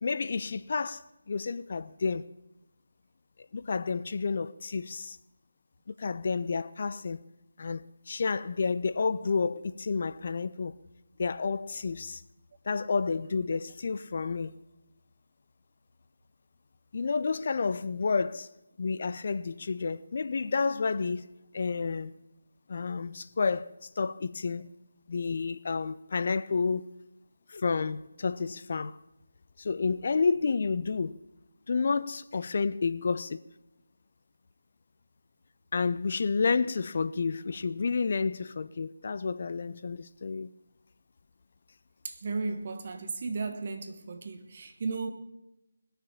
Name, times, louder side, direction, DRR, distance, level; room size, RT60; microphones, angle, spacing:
voice 1, 0.0-2.3 3.5-5.2 6.0-7.2 7.6-10.8 11.2-12.2 12.7-14.5 16.9-18.5 18.8-21.3 21.5-22.1 22.7-24.7 25.1-26.9 27.5-29.0 29.6-31.2 31.7-33.4 35.7-40.5, left 4 dB, 45° left, 0.4 m, -30 dB
voice 2, 42.0-45.1, right 4 dB, 40° right, 1.3 m, -35 dB
20.0 x 6.8 x 7.0 m
figure-of-eight pair, 155°, 0 cm